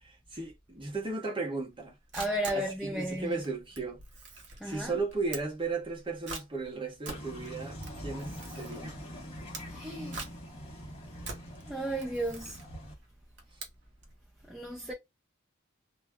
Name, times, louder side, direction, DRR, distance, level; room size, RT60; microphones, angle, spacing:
voice 1, 0.0-2.0 2.5-4.0 4.6-9.0, right 3 dB, 25° right, 0.8 m, -35 dB
Camera, 1.8-14.2, right 3 dB, 55° right, 0.9 m, -45 dB
voice 2, 2.1-3.4 4.6-5.0 9.6-10.3 11.7-12.6 14.5-14.9, right 1 dB, 5° right, 0.4 m, -34 dB
sound 1, 7.1-12.9, equal, 30° left, 0.8 m, -43 dB
2.2 x 2.0 x 3.4 m
head